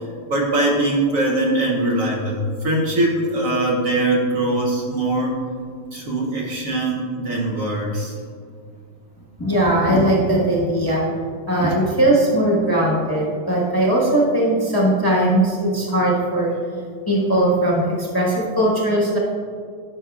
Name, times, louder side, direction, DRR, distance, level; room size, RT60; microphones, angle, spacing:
voice 1, 0.3-5.4 5.9-8.1, right 1 dB, 55° right, -2 dB, 1.1 m, -21 dB
voice 2, 9.4-11.0 11.5-16.5 17.1-19.2, right 1 dB, 15° left, -5 dB, 1.0 m, -19 dB
12.0 x 5.8 x 2.4 m, 2.1 s
omnidirectional pair, 1.9 m